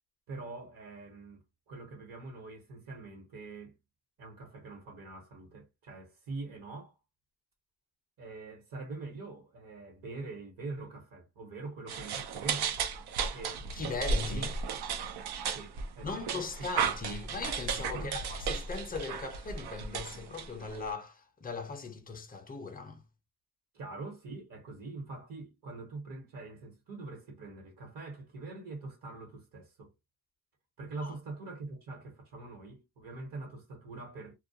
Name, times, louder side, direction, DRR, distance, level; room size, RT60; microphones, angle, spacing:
voice 1, 0.3-3.8 4.2-7.0 8.2-12.8 13.3-13.7 14.2-14.8 15.5-16.5 17.9-18.4 23.7-29.9 30.8-34.3, right 3 dB, 55° right, 1.1 m, -44 dB
sound 1, 11.9-20.9, right 5 dB, 75° right, 0.6 m, -34 dB
voice 2, 13.7-14.5 16.0-23.0 31.0-31.2, left 4 dB, 25° left, 0.5 m, -39 dB
2.2 x 2.2 x 2.7 m
cardioid pair, 145°, 39 cm